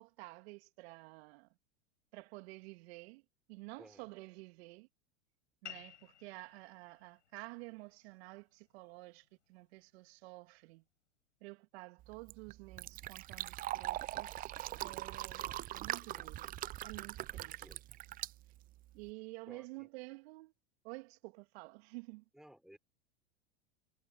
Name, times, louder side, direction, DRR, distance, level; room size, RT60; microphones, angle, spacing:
voice 1, 0.0-1.5 2.1-3.2 3.5-4.9 5.6-10.8 11.4-14.5 14.8-16.5 16.8-17.7 18.9-20.5 20.8-22.2, right 25 dB, 60° right, 2.3 m, -51 dB
sound 1, 5.6-10.7, left 10 dB, 85° left, 4.8 m, -57 dB
Fill (with liquid), 12.0-19.1, right 15 dB, 25° right, 0.4 m, -42 dB
voice 2, 17.3-17.8 19.5-19.9 22.3-22.8, equal, ahead, 4.5 m, -59 dB
hypercardioid pair, 90°, 35 cm